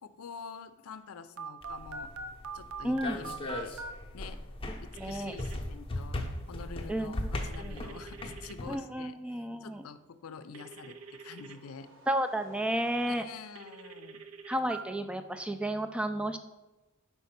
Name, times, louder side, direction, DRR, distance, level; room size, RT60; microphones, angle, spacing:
voice 1, 0.0-2.1 2.5-3.7 4.1-4.4 4.8-6.2 6.5-11.9 13.1-14.3, left 5 dB, 85° left, 12 dB, 0.5 m, -47 dB
Telephone, 1.4-3.9 4.9-5.6 7.5-8.5 10.5-11.6 13.6-14.8, right 4 dB, 80° right, 0.5 m, -43 dB
sound 1, 1.6-8.7, left 1 dB, 25° left, 0.7 m, -38 dB
voice 2, 2.8-3.2 4.7-5.3 6.9-7.3 7.6-7.7 8.7-9.9 12.1-13.2 14.5-16.4, right 1 dB, 5° right, 8 dB, 0.3 m, -32 dB
sound 2, 10.5-13.7, right 1 dB, 60° right, 1.0 m, -57 dB
5.2 x 4.5 x 5.8 m, 1.1 s
head